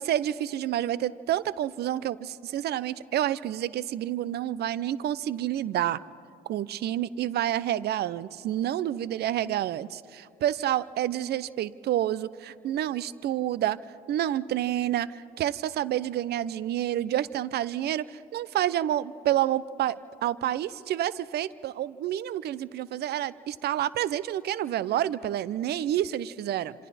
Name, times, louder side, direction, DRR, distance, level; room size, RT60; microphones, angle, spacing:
voice 1, 0.0-6.0 6.5-13.8 14.1-26.7, right 12 dB, 55° right, 19 dB, 0.7 m, -29 dB
27.5 x 26.5 x 4.3 m, 2.6 s
hypercardioid pair, 55°, 20 cm